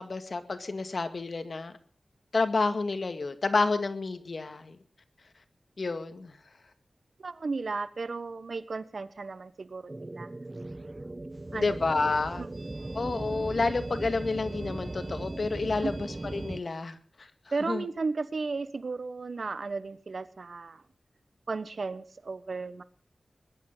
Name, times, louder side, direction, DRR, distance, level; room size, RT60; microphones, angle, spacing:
voice 1, 0.0-1.7 2.3-4.8 5.8-6.3 11.5-12.4 12.9-17.3 17.7-17.9, left 3 dB, 65° left, 9 dB, 2.0 m, -29 dB
voice 2, 7.2-10.3 10.8-10.9 11.5-11.7 12.4-12.5 15.8-15.9 17.5-20.8 21.5-22.8, right 4 dB, 70° right, 14 dB, 1.2 m, -34 dB
sound 1, 9.9-16.6, right 2 dB, 35° right, 0.8 m, -38 dB
21.0 x 11.5 x 5.7 m, 0.42 s
wide cardioid pair, 55°, 0 cm